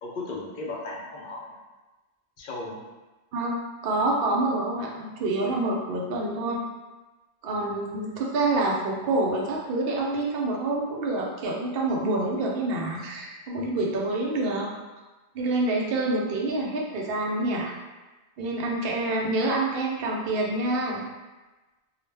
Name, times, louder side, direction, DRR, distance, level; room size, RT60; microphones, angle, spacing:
voice 1, 0.0-1.4 2.4-2.8 7.5-7.8, left 2 dB, 60° left, -2 dB, 0.6 m, -36 dB
voice 2, 3.3-6.6 7.4-14.7 15.3-17.7 18.4-21.0, right 2 dB, 65° right, -2 dB, 0.7 m, -27 dB
2.3 x 2.1 x 3.2 m, 1.2 s
omnidirectional pair, 1.1 m